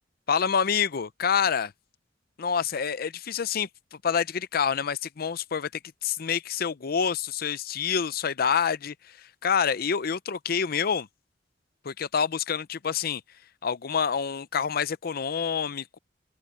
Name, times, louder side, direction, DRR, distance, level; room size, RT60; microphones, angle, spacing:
voice 1, 0.3-1.7 2.4-11.1 11.8-13.2 13.6-16.0, left 7 dB, 55° left, 0.6 m, -27 dB
open air
head